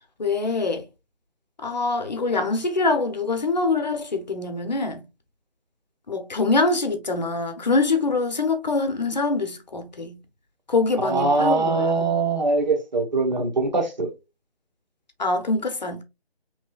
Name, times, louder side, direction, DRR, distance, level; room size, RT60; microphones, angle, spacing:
voice 1, 0.2-0.8 1.6-5.0 6.1-10.2 10.7-11.9 15.2-16.0, left 3 dB, 45° left, 0.8 m, -24 dB
voice 2, 11.0-14.1, right 3 dB, 45° right, 1.2 m, -22 dB
5.7 x 3.0 x 2.4 m
figure-of-eight pair, 155°, 31 cm